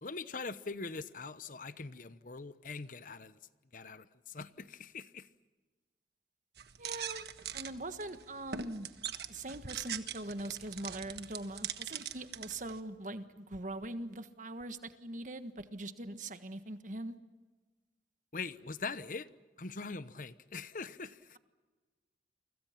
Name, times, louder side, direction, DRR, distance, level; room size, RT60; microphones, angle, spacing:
voice 1, 0.0-3.4 3.7-5.3 18.3-19.3 19.6-21.4, left 4 dB, 50° left, 0.9 m, -42 dB
sound 1, 6.6-12.8, right 8 dB, 65° right, 1.4 m, -42 dB
voice 2, 6.8-7.3 7.5-8.9 9.3-17.1, right 2 dB, 45° right, 1.5 m, -42 dB
29.5 x 25.0 x 5.9 m
head